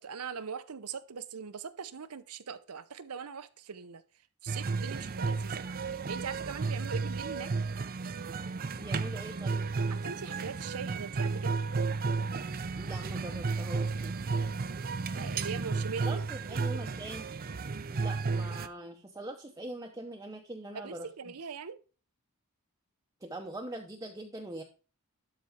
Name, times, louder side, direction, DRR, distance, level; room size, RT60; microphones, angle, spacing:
voice 1, 0.0-4.0 4.4-7.5 9.9-11.6 15.2-16.2 16.5-16.9 20.7-21.8, right 6 dB, 85° right, 0.8 m, -41 dB
sound 1, 4.5-18.7, right 4 dB, 40° right, 0.5 m, -33 dB
voice 2, 8.8-9.7 12.8-14.2 15.5-15.6 16.0-17.3 17.9-21.1 23.2-24.6, right 1 dB, 15° right, 0.8 m, -42 dB
12.0 x 4.2 x 4.9 m
head